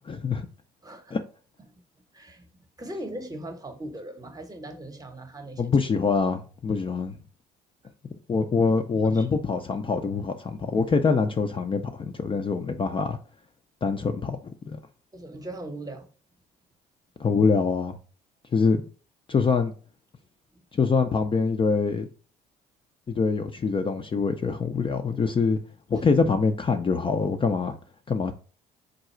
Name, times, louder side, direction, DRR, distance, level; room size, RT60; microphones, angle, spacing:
voice 1, 0.1-0.5 1.1-1.2 5.6-7.2 8.3-13.2 13.8-14.4 14.7-14.8 17.2-18.0 18.5-18.8 19.3-19.7 20.7-22.1 23.1-25.6 25.9-27.8 28.1-28.3, left 4 dB, 25° left, 0.5 m, -24 dB
voice 2, 0.8-1.2 2.1-2.5 2.8-5.6 9.0-9.3 15.1-16.1, right 1 dB, 20° right, 0.9 m, -39 dB
3.8 x 2.3 x 4.3 m
hypercardioid pair, 60°, 19 cm